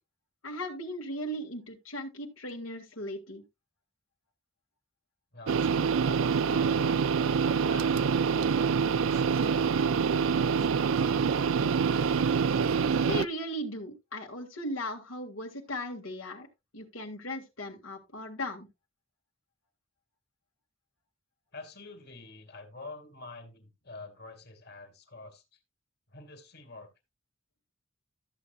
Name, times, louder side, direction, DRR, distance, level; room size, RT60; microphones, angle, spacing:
voice 1, 0.4-3.4 13.0-16.5 16.7-18.7, equal, 85° left, 2.0 m, -37 dB
voice 2, 5.3-11.8 21.5-25.6 26.1-26.9, left 3 dB, 55° left, 2.3 m, -47 dB
sound 1, 5.5-13.3, right 6 dB, 75° right, 0.5 m, -26 dB
13.5 x 8.1 x 2.4 m
head